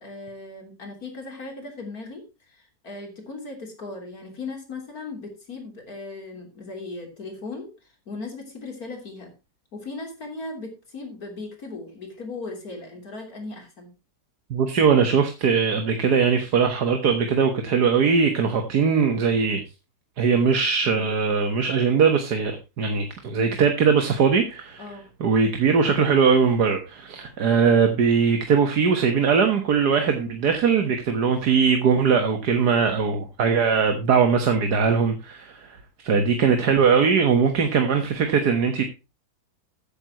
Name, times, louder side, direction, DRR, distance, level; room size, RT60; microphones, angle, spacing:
voice 1, 0.0-9.3 9.7-13.9 24.8-25.1, left 3 dB, 65° left, 3.9 m, -37 dB
voice 2, 14.5-19.6 20.2-24.9 25.2-35.8 36.0-38.8, right 6 dB, 80° right, 1.9 m, -20 dB
14.0 x 9.8 x 3.0 m
omnidirectional pair, 1.7 m